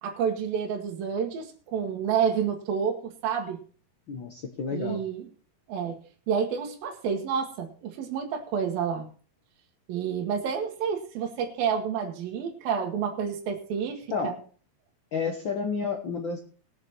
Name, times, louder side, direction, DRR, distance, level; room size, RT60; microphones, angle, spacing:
voice 1, 0.0-3.6 4.7-5.2 5.7-6.0 6.3-9.1 9.9-14.3, right 7 dB, 85° right, 2 dB, 3.2 m, -29 dB
voice 2, 4.1-5.0 14.1-14.3 15.1-16.4, left 5 dB, 70° left, 3 dB, 1.1 m, -30 dB
20.0 x 6.7 x 4.4 m, 0.41 s
omnidirectional pair, 4.0 m